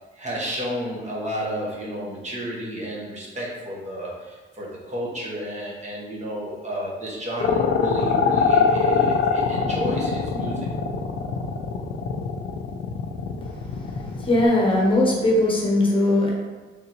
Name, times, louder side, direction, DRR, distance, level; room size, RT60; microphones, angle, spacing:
voice 1, 0.1-10.7, equal, 35° right, -4 dB, 1.2 m, -31 dB
sound 1, 7.4-14.4, left 6 dB, 65° left, 0.4 m, -23 dB
voice 2, 14.2-16.3, left 1 dB, 25° left, -2 dB, 1.0 m, -20 dB
3.6 x 3.5 x 3.0 m, 1.2 s
cardioid pair, 90°, 20 cm